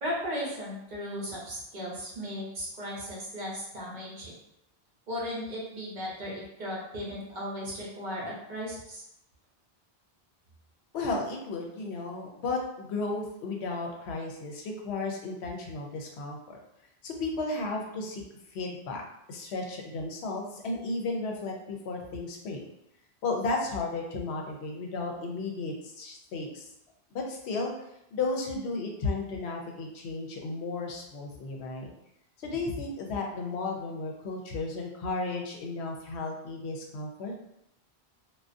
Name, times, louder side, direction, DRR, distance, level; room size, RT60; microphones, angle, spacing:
voice 1, 0.0-4.3 5.1-9.0, equal, 50° right, -5 dB, 0.8 m, -36 dB
voice 2, 10.9-16.6 17.0-18.2 18.5-19.0 19.3-22.6 23.2-26.7 27.1-27.7 28.1-31.9 32.4-37.3, left 3 dB, 90° left, 1 dB, 0.8 m, -34 dB
2.4 x 2.2 x 2.5 m, 0.81 s
omnidirectional pair, 1.1 m